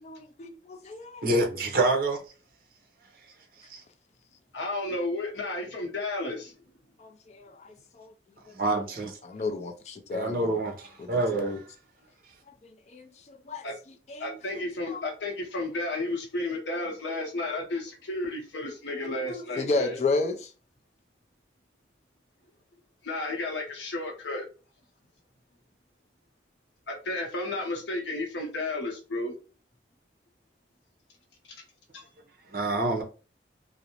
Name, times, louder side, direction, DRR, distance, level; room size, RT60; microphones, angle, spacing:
voice 1, 0.0-1.2 7.0-8.1 8.5-8.6 9.2-10.6 11.0-11.6 12.6-13.6 14.1-15.1 19.0-20.5, left 3 dB, 40° left, 0.3 m, -33 dB
voice 2, 1.2-2.2 3.7-3.8 8.5-9.2 10.1-11.6 32.5-33.0, right 2 dB, 55° right, 0.6 m, -27 dB
voice 3, 4.5-6.5 13.6-13.7 14.2-20.0 23.0-24.5 26.9-29.4 31.9-32.1, left 2 dB, 90° left, 0.7 m, -32 dB
2.5 x 2.0 x 2.8 m
head